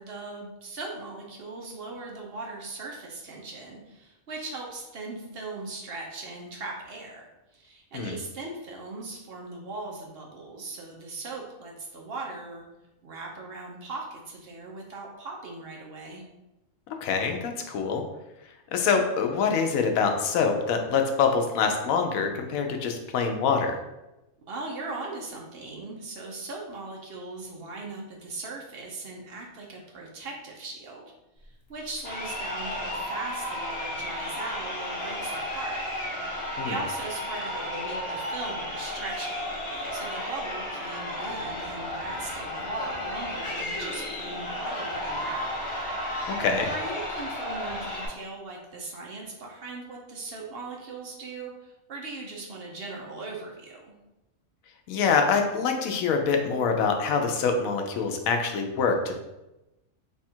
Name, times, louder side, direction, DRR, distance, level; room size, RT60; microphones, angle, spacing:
voice 1, 0.0-12.6 13.0-16.2 24.5-31.0 31.4-35.9 36.3-39.5 39.9-45.6 46.6-53.9, right 3 dB, 55° right, -1 dB, 0.8 m, -39 dB
voice 2, 17.0-18.0 18.7-23.8 36.6-36.8 46.3-46.7 54.9-59.2, left 5 dB, 85° left, 4 dB, 1.0 m, -25 dB
Crowd, 32.0-48.1, left 1 dB, 60° left, 1.1 m, -33 dB
3.4 x 2.4 x 4.3 m, 0.98 s
omnidirectional pair, 1.4 m